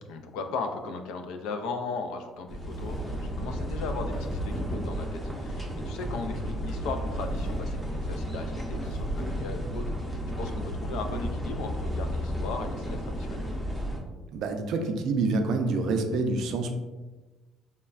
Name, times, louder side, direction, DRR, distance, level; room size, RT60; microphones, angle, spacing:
voice 1, 0.1-13.6, left 4 dB, 90° left, 6 dB, 0.3 m, -37 dB
sound 1, 2.5-14.0, equal, ahead, 0.5 m, -33 dB
sound 2, 2.7-3.4 4.0-5.4 7.2-8.0 8.7-9.6, left 1 dB, 25° left, 1.0 m, -40 dB
voice 2, 14.3-16.7, right 3 dB, 60° right, 5 dB, 0.3 m, -27 dB
3.2 x 2.1 x 2.3 m, 1.2 s
cardioid pair, 150°, 0 cm